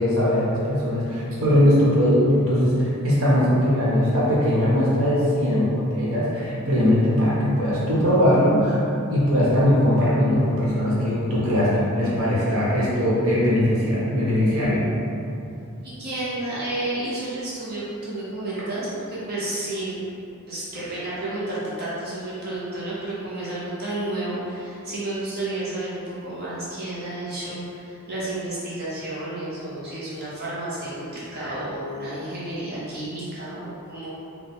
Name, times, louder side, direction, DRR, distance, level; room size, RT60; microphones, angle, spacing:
voice 1, 0.0-8.8 9.1-14.8, equal, 75° right, -7 dB, 1.2 m, -20 dB
voice 2, 15.8-20.1 20.5-34.1, right 1 dB, 50° right, -9 dB, 0.9 m, -31 dB
4.6 x 2.3 x 3.6 m, 2.7 s
head